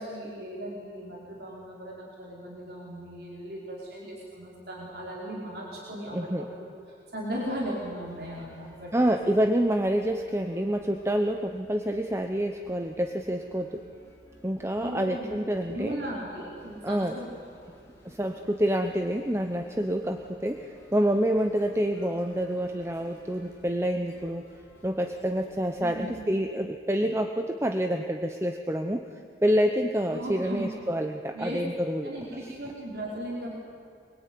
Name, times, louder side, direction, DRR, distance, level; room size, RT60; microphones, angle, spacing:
voice 1, 0.0-6.5 6.9-9.1 14.8-15.4 15.7-17.5 25.8-26.3 30.1-30.7 31.3-31.6 32.0-33.5, right 1 dB, 60° right, -4 dB, 4.7 m, -37 dB
voice 2, 6.1-6.5 8.9-13.8 14.4-16.0 16.8-17.2 18.0-24.5 24.8-29.0 29.4-32.1, equal, 15° right, 6 dB, 0.9 m, -27 dB
sound 1, 7.3-26.3, equal, 15° left, 5.2 m, -56 dB
25.0 x 23.0 x 9.6 m, 2.5 s
head